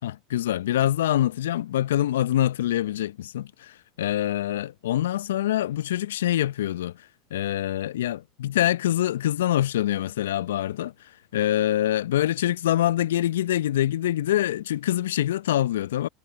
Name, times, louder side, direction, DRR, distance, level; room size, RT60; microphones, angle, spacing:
voice 1, 0.0-6.9 7.3-10.9 11.3-16.1, left 12 dB, 70° left, 0.9 m, -25 dB
figure-of-eight pair, 75°, 0 cm